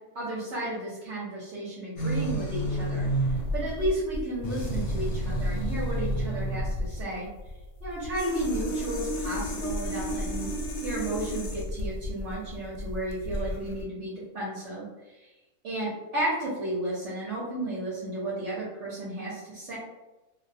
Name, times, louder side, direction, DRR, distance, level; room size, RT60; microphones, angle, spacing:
voice 1, 0.1-3.1 3.5-7.3 7.8-10.5 10.8-14.9 15.6-19.8, right 1 dB, 60° right, -7 dB, 1.0 m, -33 dB
sound 1, 2.0-13.8, equal, 70° left, 0.8 m, -31 dB
2.4 x 2.1 x 2.6 m, 1.1 s
omnidirectional pair, 1.5 m